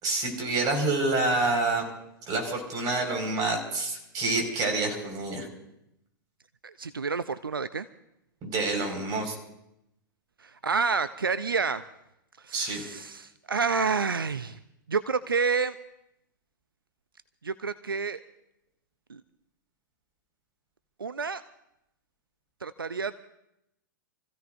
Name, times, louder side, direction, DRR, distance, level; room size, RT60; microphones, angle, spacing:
voice 1, 0.0-1.8 2.3-5.5 8.4-9.3 12.5-12.8, right 2 dB, 35° right, 2 dB, 5.2 m, -27 dB
voice 2, 6.6-7.9 10.4-11.8 12.4-14.6 14.9-15.7 17.4-18.2 19.1-19.2 21.0-21.4 22.6-23.1, right 5 dB, 90° right, 14 dB, 0.5 m, -29 dB
28.5 x 15.5 x 2.6 m, 0.83 s
figure-of-eight pair, 105°, 11 cm